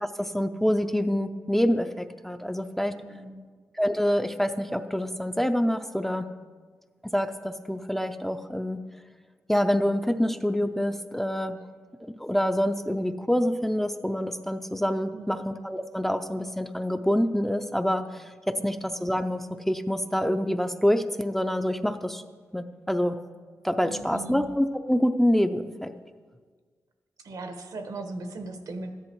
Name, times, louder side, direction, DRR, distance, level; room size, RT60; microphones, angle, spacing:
voice 1, 0.0-2.9 3.8-6.3 7.1-8.8 9.5-11.6 12.2-22.2 22.5-23.2 23.6-25.9, equal, 5° left, 8 dB, 0.5 m, -26 dB
voice 2, 3.0-3.5 15.1-15.4 18.5-18.7 23.8-24.5 27.2-28.9, right 2 dB, 75° right, 6 dB, 1.3 m, -38 dB
13.5 x 10.5 x 4.5 m, 1.5 s
wide cardioid pair, 100°, 6 cm